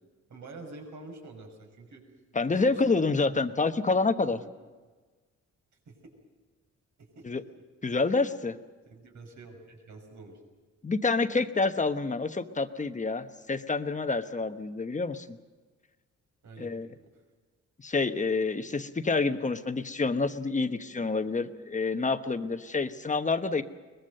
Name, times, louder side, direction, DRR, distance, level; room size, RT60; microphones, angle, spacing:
voice 1, 0.3-2.0 2.5-3.0 3.3-3.5 4.3-4.5 5.9-6.0 7.0-7.4 8.9-10.4 16.4-17.2, right 3 dB, 70° right, 2 dB, 5.8 m, -48 dB
voice 2, 2.3-4.4 7.2-7.4 7.8-8.6 10.8-15.4 16.6-16.9 17.8-23.6, left 3 dB, 25° left, 9 dB, 1.1 m, -28 dB
22.5 x 21.0 x 6.6 m, 1.3 s
cardioid pair, 115°, 30 cm